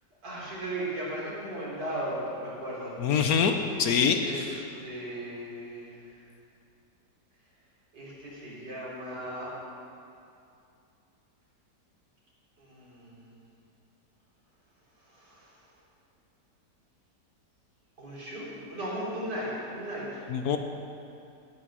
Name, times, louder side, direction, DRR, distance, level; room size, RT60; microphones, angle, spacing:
voice 1, 0.2-3.2 4.2-6.2 7.9-9.5 12.6-13.2 15.0-15.6 18.0-20.2, right 1 dB, 80° right, -7 dB, 4.2 m, -37 dB
voice 2, 3.0-4.4 20.3-20.6, left 6 dB, 65° left, 6 dB, 1.1 m, -25 dB
18.0 x 6.2 x 6.2 m, 2.6 s
omnidirectional pair, 1.8 m